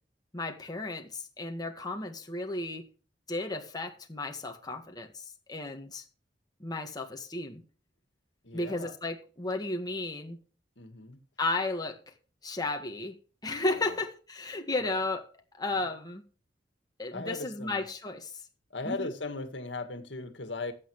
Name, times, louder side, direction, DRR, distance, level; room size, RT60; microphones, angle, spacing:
voice 1, 0.3-2.9 3.3-6.0 6.6-7.6 8.5-10.4 11.4-12.1 12.4-15.2 15.5-16.2 17.0-18.4 18.8-19.1, left 2 dB, 20° left, 1.6 m, -34 dB
voice 2, 8.4-8.9 10.8-11.2 13.6-14.0 14.8-15.0 15.7-15.9 17.1-17.8 18.7-20.7, left 3 dB, 75° left, 2.0 m, -38 dB
15.0 x 9.8 x 3.2 m
head